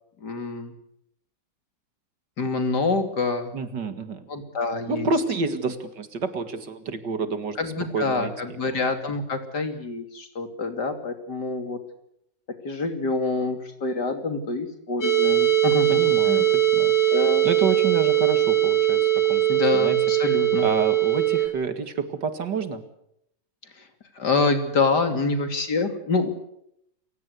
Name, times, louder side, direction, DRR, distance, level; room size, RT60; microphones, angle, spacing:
voice 1, 0.2-0.7 2.4-3.5 4.3-5.1 7.6-11.8 12.6-16.5 17.1-17.5 19.5-20.7 23.8-23.9 24.1-26.3, left 3 dB, 70° left, 8 dB, 3.4 m, -26 dB
voice 2, 3.5-4.3 4.9-7.6 7.9-8.3 8.7-8.8 15.9-16.5 16.7-17.1 17.4-19.5 19.7-20.0 20.6-22.8, right 4 dB, 75° right, 11 dB, 2.6 m, -28 dB
sound 1, 15.0-21.5, right 12 dB, 90° left, 3.7 m, -20 dB
28.5 x 16.5 x 8.2 m, 0.76 s
omnidirectional pair, 1.9 m